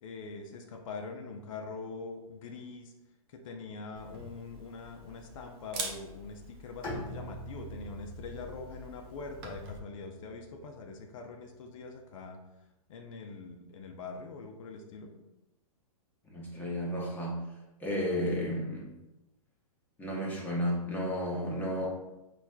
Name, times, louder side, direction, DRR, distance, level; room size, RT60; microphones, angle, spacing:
voice 1, 0.0-2.9 3.3-12.4 12.9-15.1, left 4 dB, 60° left, 3 dB, 0.6 m, -43 dB
Camera, 4.0-9.8, right 2 dB, 40° right, 0.8 m, -45 dB
Bowed string instrument, 6.8-10.8, equal, 30° left, 1.4 m, -44 dB
voice 2, 16.3-17.4 17.8-18.9 20.0-21.9, equal, 10° left, -4 dB, 0.9 m, -32 dB
5.8 x 2.3 x 2.2 m, 1.0 s
hypercardioid pair, 135°, 19 cm